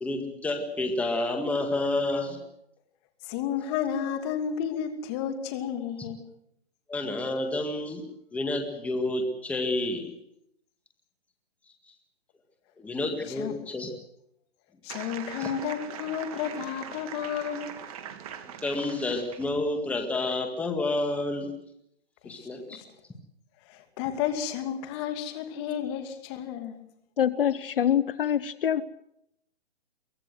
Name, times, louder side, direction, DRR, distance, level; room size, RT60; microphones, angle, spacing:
voice 1, 0.0-2.4 6.9-8.1 8.3-10.1 12.8-13.9 15.4-15.5 18.6-21.5 22.2-22.6, left 2 dB, 5° left, 4 dB, 1.9 m, -29 dB
voice 2, 3.2-6.3 13.3-13.6 14.8-17.8 22.2-22.8 23.6-26.8, left 8 dB, 25° left, 7 dB, 2.6 m, -32 dB
sound 1, 14.9-19.6, right 9 dB, 35° right, 2.3 m, -41 dB
voice 3, 27.2-28.8, left 9 dB, 60° left, 16 dB, 1.0 m, -25 dB
23.5 x 17.5 x 7.9 m, 0.78 s
hypercardioid pair, 155°, 31 cm